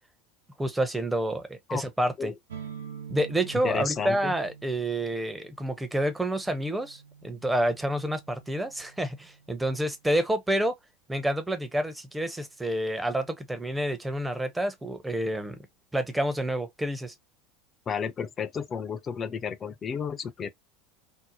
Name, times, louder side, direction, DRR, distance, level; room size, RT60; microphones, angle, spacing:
voice 1, 0.6-2.3 3.1-10.7 11.1-15.6 15.9-17.1, right 1 dB, 10° right, 0.7 m, -28 dB
sound 1, 2.5-10.1, right 7 dB, 75° right, 0.4 m, -46 dB
voice 2, 3.6-4.3 17.9-20.5, left 7 dB, 30° left, 0.4 m, -32 dB
2.7 x 2.0 x 2.8 m
figure-of-eight pair, 75°, 0 cm